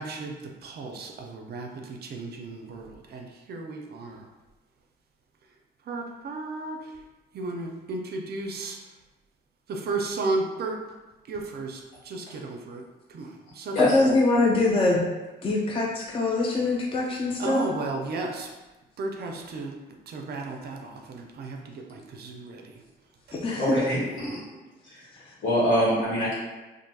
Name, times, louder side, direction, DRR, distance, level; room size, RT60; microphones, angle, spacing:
voice 1, 0.0-4.3 5.8-7.0 7.3-8.8 9.7-10.8 11.3-12.8 13.1-14.2 17.4-18.5 19.0-22.8 23.3-23.4, right 3 dB, 55° right, 2 dB, 0.4 m, -34 dB
voice 2, 13.8-15.0 15.4-17.7 23.4-23.6, left 2 dB, 25° left, -2 dB, 0.4 m, -23 dB
voice 3, 23.6-24.4 24.9-25.0 25.4-26.3, equal, 75° left, -8 dB, 1.4 m, -24 dB
2.7 x 2.5 x 2.2 m, 1.1 s
cardioid pair, 90°, 20 cm